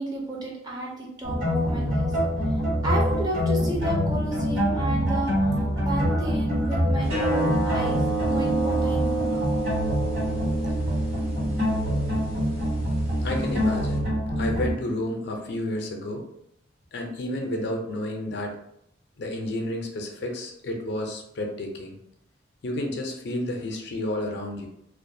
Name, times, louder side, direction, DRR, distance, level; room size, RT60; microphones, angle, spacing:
voice 1, 0.0-2.1 2.8-5.6 5.8-8.0 8.3-9.6, right 1 dB, 20° right, -3 dB, 0.5 m, -32 dB
sound 1, 1.2-14.7, equal, 65° right, 1.3 m, -25 dB
sound 2, 7.0-14.0, right 3 dB, 85° right, 1.2 m, -30 dB
voice 2, 13.2-14.0 14.4-16.2 16.9-18.6 19.2-21.9 22.6-24.7, left 1 dB, 55° left, 2 dB, 0.4 m, -31 dB
2.3 x 2.1 x 2.6 m, 0.75 s
head